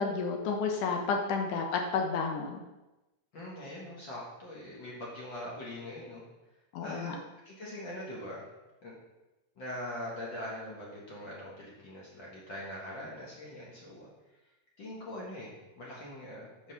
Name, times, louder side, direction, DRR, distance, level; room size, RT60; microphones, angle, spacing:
voice 1, 0.0-2.6 6.7-7.2, left 5 dB, 75° left, 2 dB, 2.3 m, -31 dB
voice 2, 3.3-6.2 6.8-7.2 7.4-8.5 8.8-8.9 9.6-14.1 14.8-16.5, left 1 dB, 45° left, -5 dB, 1.9 m, -42 dB
6.5 x 5.5 x 5.7 m, 1.0 s
omnidirectional pair, 3.9 m